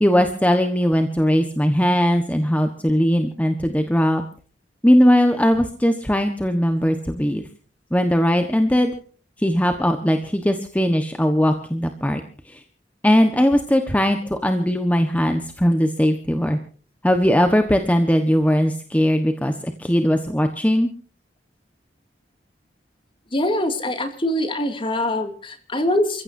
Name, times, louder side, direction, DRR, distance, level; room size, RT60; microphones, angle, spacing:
voice 1, 0.0-4.2 4.8-7.4 7.9-8.9 9.4-12.2 12.5-12.6 13.0-16.6 17.0-20.9, equal, 10° left, 6 dB, 1.3 m, -19 dB
voice 2, 23.3-26.2, left 1 dB, 30° left, 7 dB, 2.5 m, -23 dB
29.0 x 15.5 x 2.7 m, 0.42 s
head